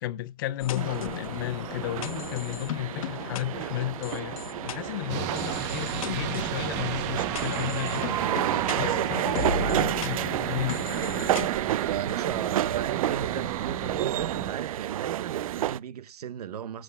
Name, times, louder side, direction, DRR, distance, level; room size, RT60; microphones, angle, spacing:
voice 1, 0.0-8.2 8.7-10.8, left 14 dB, 35° left, 0.5 m, -33 dB
sound 1, 0.6-11.5, left 8 dB, 60° left, 1.1 m, -37 dB
sound 2, 0.8-15.8, right 12 dB, 65° right, 0.4 m, -31 dB
sound 3, 5.1-14.5, right 10 dB, 30° right, 0.8 m, -34 dB
voice 2, 9.5-10.0 11.8-16.8, right 9 dB, 85° right, 0.9 m, -36 dB
19.5 x 7.5 x 2.3 m
hypercardioid pair, 170°, 19 cm